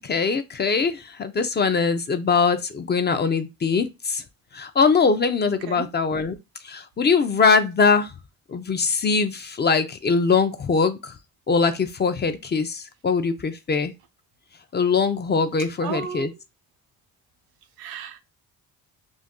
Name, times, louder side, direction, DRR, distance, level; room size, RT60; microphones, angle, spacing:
voice 1, 0.0-4.2 4.5-6.4 6.6-8.1 8.5-11.1 11.5-13.9 14.7-16.3, left 5 dB, 30° left, 0.4 m, -22 dB
voice 2, 5.5-5.9 15.8-16.3 17.8-18.2, right 7 dB, 80° right, 0.6 m, -33 dB
2.5 x 2.3 x 3.6 m
cardioid pair, 90°, 36 cm